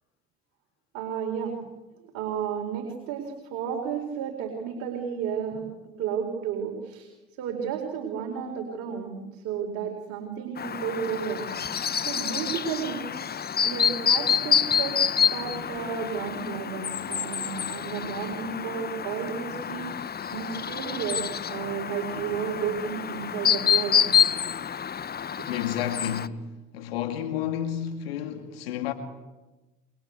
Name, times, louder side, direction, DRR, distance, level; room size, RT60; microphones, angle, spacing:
voice 1, 0.9-1.6 2.0-5.7 6.0-7.1 7.4-13.3 13.6-24.1, right 7 dB, 70° right, 4.6 m, -33 dB
Chirp tweet, 10.6-26.3, left 8 dB, 30° left, 1.0 m, -27 dB
voice 2, 25.5-26.4 26.7-28.9, left 10 dB, 90° left, 2.2 m, -31 dB
28.0 x 23.5 x 8.2 m
hypercardioid pair, 70°, 30 cm